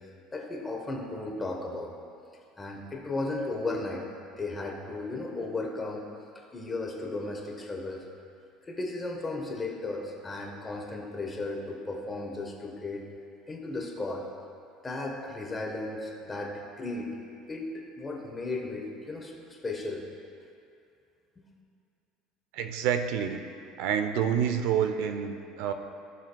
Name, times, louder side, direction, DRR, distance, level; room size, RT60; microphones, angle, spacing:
voice 1, 0.3-1.9 2.6-4.1 4.4-6.0 6.5-8.0 8.7-13.1 13.5-14.2 14.8-17.2 17.5-20.0 21.4-21.5, left 2 dB, 15° left, 0 dB, 1.2 m, -35 dB
voice 2, 22.5-23.4 23.8-25.7, right 8 dB, 80° right, 8 dB, 0.6 m, -28 dB
15.5 x 6.1 x 2.3 m, 2.5 s
cardioid pair, 140°, 0 cm